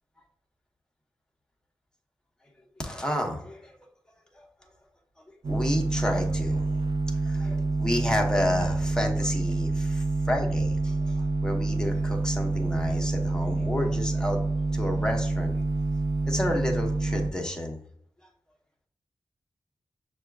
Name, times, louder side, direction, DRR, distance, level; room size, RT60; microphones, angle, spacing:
voice 1, 2.8-3.7 4.4-4.5 5.4-6.8 7.2-14.4 14.7-15.5 16.3-17.8, left 1 dB, 10° left, 1 dB, 0.9 m, -30 dB
sound 1, 5.4-17.3, right 2 dB, 75° right, 0.6 m, -27 dB
6.3 x 2.3 x 3.5 m, 0.65 s
wide cardioid pair, 70°, 8 cm